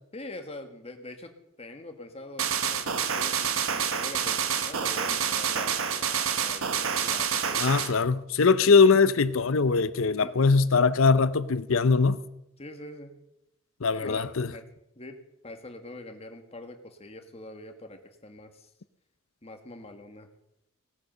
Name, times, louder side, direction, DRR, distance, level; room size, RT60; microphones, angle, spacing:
voice 1, 0.1-7.7 10.2-10.3 12.6-13.2 13.9-14.6 14.9-18.7 19.4-20.3, left 2 dB, 30° left, 1.6 m, -44 dB
sound 1, 2.4-7.9, right 7 dB, 80° right, 1.2 m, -28 dB
voice 2, 7.6-12.2 13.8-14.5, left 4 dB, 70° left, 0.7 m, -21 dB
18.0 x 8.3 x 6.7 m
head